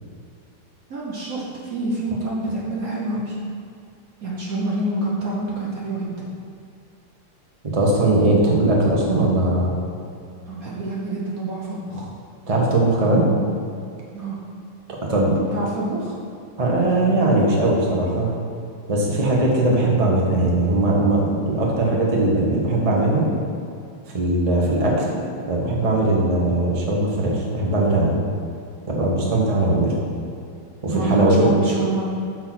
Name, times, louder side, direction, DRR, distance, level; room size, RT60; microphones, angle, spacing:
voice 1, 0.9-3.3 4.2-6.3 10.5-12.1 14.1-14.4 15.5-16.1 30.9-32.0, right 2 dB, 55° right, -4 dB, 1.0 m, -27 dB
voice 2, 7.6-9.7 12.5-13.3 14.9-15.4 16.6-18.3 18.9-23.3 24.1-25.2 25.5-28.2 28.9-29.9 30.8-31.5, right 2 dB, 35° right, -3 dB, 0.5 m, -19 dB
6.6 x 4.6 x 5.8 m, 2.5 s
omnidirectional pair, 2.4 m